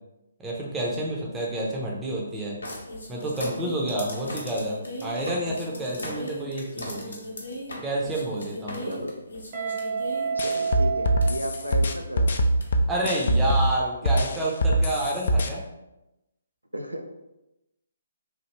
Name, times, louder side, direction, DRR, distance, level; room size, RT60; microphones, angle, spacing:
voice 1, 0.4-2.6 3.1-7.2 7.8-9.0 12.9-15.6, right 1 dB, 10° right, -4 dB, 0.6 m, -29 dB
sound 1, 2.6-10.5 11.2-11.3 11.5-11.9 12.6-12.7, left 1 dB, 65° left, 0.7 m, -37 dB
Guitar, 9.5-12.4, right 5 dB, 40° right, 0.8 m, -30 dB
sound 2, 10.4-13.7 14.1-15.5, right 1 dB, 50° left, 0.3 m, -22 dB
voice 2, 10.4-12.4 16.7-17.1, equal, 80° right, 4 dB, 0.4 m, -34 dB
3.2 x 2.4 x 2.9 m, 0.93 s
figure-of-eight pair, 135°, 0 cm